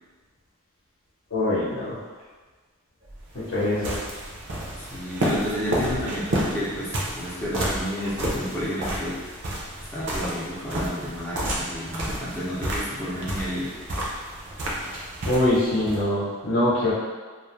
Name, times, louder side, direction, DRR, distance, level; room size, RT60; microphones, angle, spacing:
voice 1, 1.3-2.0 3.3-4.0 15.2-16.9, left 1 dB, 75° left, -9 dB, 0.7 m, -23 dB
sound 1, 3.1-16.0, right 1 dB, 55° right, 0.5 m, -31 dB
voice 2, 4.8-9.2 9.9-13.7, equal, 10° left, -7 dB, 0.3 m, -31 dB
2.3 x 2.0 x 3.0 m, 1.4 s
head